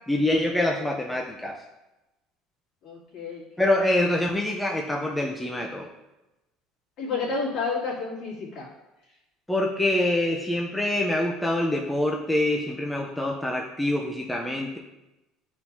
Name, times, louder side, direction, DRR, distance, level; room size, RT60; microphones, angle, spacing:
voice 1, 0.1-1.6 3.6-5.9 9.5-14.8, left 1 dB, 5° left, -1 dB, 0.6 m, -25 dB
voice 2, 2.8-3.4 7.0-8.7, left 4 dB, 55° left, -5 dB, 2.5 m, -30 dB
10.5 x 4.4 x 2.8 m, 0.98 s
cardioid pair, 135°, 0 cm